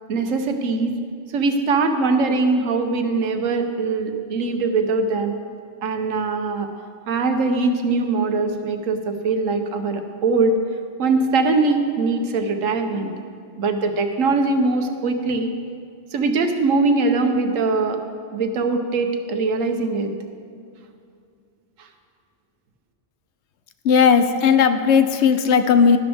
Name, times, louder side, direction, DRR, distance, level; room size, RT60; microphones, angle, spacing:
voice 1, 0.1-1.0 1.3-5.3 5.8-6.7 7.1-10.6 11.0-13.1 13.6-15.5 16.1-18.0 18.3-20.1 21.8-21.9, right 3 dB, 80° right, 6 dB, 1.2 m, -21 dB
voice 2, 23.8-26.0, left 6 dB, 65° left, 10 dB, 0.8 m, -16 dB
12.0 x 12.0 x 3.5 m, 2.3 s
omnidirectional pair, 1.3 m